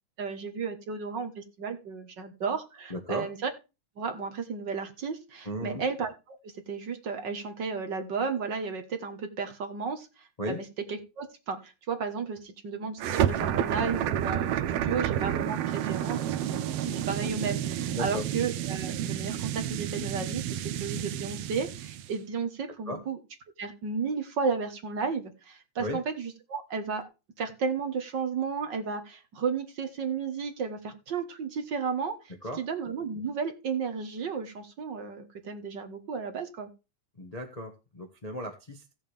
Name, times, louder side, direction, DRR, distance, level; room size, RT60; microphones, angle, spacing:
voice 1, 0.2-3.5 4.0-6.1 6.4-10.6 10.9-23.2 23.6-27.0 27.4-32.2 32.6-36.7, right 5 dB, 50° right, 7 dB, 1.6 m, -33 dB
voice 2, 2.9-3.3 5.4-5.8 10.4-10.6 17.9-18.2 22.8-23.0 25.8-26.0 32.4-32.6 37.2-38.9, equal, 90° left, 3 dB, 0.3 m, -35 dB
sound 1, 13.0-22.1, right 10 dB, 70° right, 1.5 m, -30 dB
16.5 x 7.3 x 3.4 m, 0.28 s
omnidirectional pair, 3.3 m